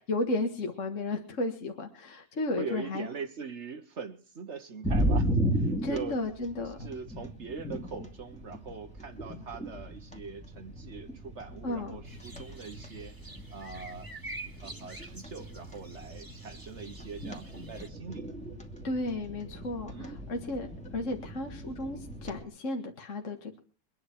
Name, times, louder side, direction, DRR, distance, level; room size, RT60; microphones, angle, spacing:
voice 1, 0.1-3.1 5.8-6.9 11.6-12.0 18.8-23.6, left 2 dB, 45° left, 3 dB, 2.0 m, -34 dB
voice 2, 2.6-6.5 6.8-13.1 13.5-14.1 14.6-18.3 19.9-20.1, right 5 dB, 45° right, 10 dB, 1.2 m, -42 dB
sound 1, 4.8-22.4, right 1 dB, 5° left, 2.4 m, -36 dB
sound 2, 12.0-17.9, right 2 dB, 10° right, 1.9 m, -48 dB
23.5 x 10.5 x 4.6 m, 0.38 s
omnidirectional pair, 1.9 m